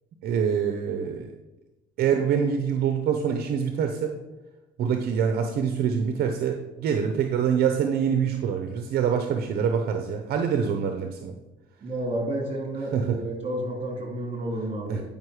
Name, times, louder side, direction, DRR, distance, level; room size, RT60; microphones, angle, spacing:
voice 1, 0.2-1.3 2.0-4.2 4.8-11.3 12.9-13.2 14.9-15.0, right 7 dB, 65° right, 5 dB, 0.8 m, -25 dB
voice 2, 11.8-15.0, right 1 dB, 35° right, 1 dB, 2.6 m, -31 dB
9.3 x 5.2 x 4.9 m, 1.1 s
cardioid pair, 110°, 17 cm